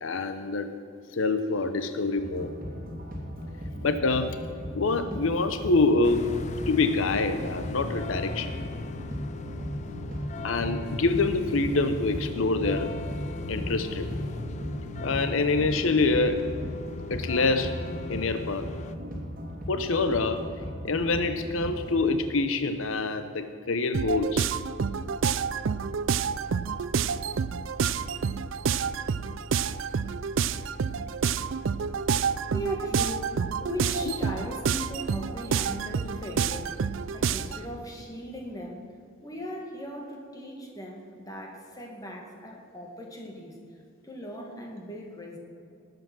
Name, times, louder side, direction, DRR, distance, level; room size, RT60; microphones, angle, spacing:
voice 1, 0.0-0.7 1.1-2.5 3.8-4.4 4.7-6.2 6.7-8.5 10.4-12.9 13.5-14.1 15.0-16.5 17.1-17.8 18.1-18.7 19.7-20.4 20.8-24.5 34.0-34.1, left 3 dB, 80° left, 10 dB, 0.7 m, -26 dB
sound 1, 2.2-22.1, equal, 45° right, 2.8 m, -37 dB
sound 2, 6.0-18.9, left 3 dB, 35° left, 0.4 m, -39 dB
sound 3, 23.9-37.7, right 6 dB, 75° right, 0.4 m, -28 dB
voice 2, 32.5-38.9 39.2-43.6 44.0-45.4, equal, 20° left, 0 dB, 1.9 m, -38 dB
19.0 x 7.9 x 6.1 m, 2.5 s
head